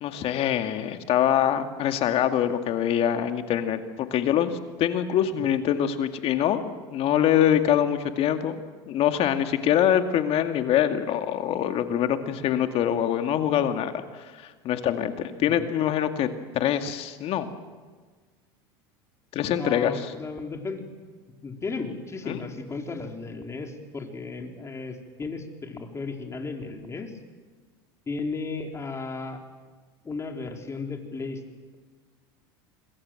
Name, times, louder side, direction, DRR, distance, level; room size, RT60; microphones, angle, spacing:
voice 1, 0.0-8.5 8.9-16.3 16.5-17.6 19.3-20.1 22.3-22.4, left 10 dB, 50° left, 7 dB, 2.2 m, -24 dB
voice 2, 19.6-20.9 21.4-27.1 28.1-29.4 30.0-31.4, left 3 dB, 20° left, 3 dB, 4.1 m, -35 dB
26.5 x 21.5 x 7.8 m, 1.5 s
hypercardioid pair, 95°, 13 cm